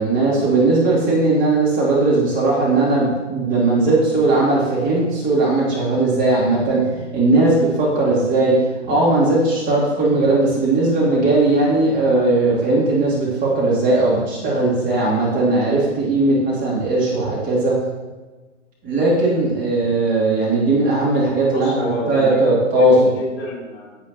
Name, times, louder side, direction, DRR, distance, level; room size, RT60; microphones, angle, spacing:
voice 1, 0.0-8.6 8.9-17.8 18.8-23.0, right 2 dB, 20° right, -5 dB, 2.4 m, -18 dB
voice 2, 21.5-24.0, left 1 dB, 25° left, -3 dB, 3.0 m, -29 dB
10.5 x 8.0 x 2.9 m, 1.2 s
figure-of-eight pair, 110°, 38 cm